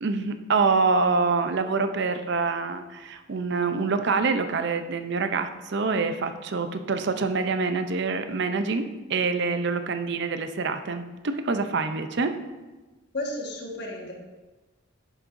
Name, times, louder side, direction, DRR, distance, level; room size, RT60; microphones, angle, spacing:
voice 1, 0.0-12.4, right 4 dB, 60° right, 8 dB, 0.5 m, -26 dB
voice 2, 13.1-14.1, left 1 dB, 55° left, -1 dB, 1.5 m, -32 dB
9.9 x 7.4 x 2.6 m, 1.2 s
head